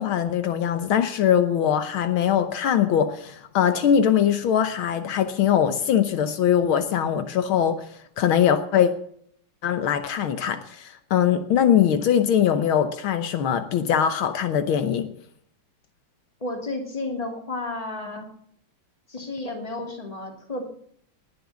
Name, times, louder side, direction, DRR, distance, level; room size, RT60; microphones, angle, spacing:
voice 1, 0.0-7.9 8.2-8.9 9.6-15.1, left 9 dB, 75° left, 1.8 m, -22 dB
voice 2, 16.4-18.3 19.1-20.6, left 2 dB, 15° left, 2.6 m, -32 dB
19.5 x 7.8 x 7.1 m
omnidirectional pair, 2.3 m